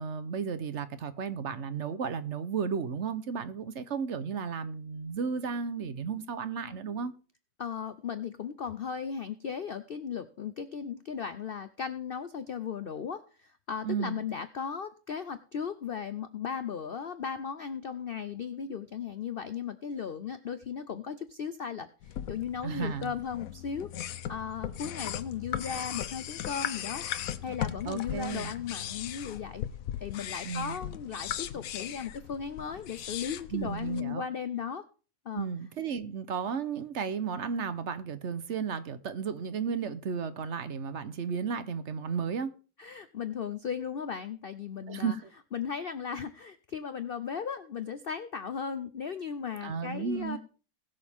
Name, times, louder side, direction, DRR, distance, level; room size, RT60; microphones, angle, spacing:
voice 1, 0.0-7.1 13.8-14.2 22.6-23.1 27.8-28.5 30.4-30.8 33.5-34.2 35.3-42.5 44.9-45.3 49.6-50.4, right 6 dB, 50° right, 1.0 m, -34 dB
voice 2, 7.6-23.9 24.3-27.0 27.4-29.6 30.0-34.8 35.3-35.5 42.8-45.1 45.5-50.4, left 7 dB, 85° left, 0.5 m, -36 dB
sound 1, 22.0-34.0, left 10 dB, 65° left, 1.0 m, -38 dB
20.5 x 6.8 x 3.5 m
omnidirectional pair, 1.9 m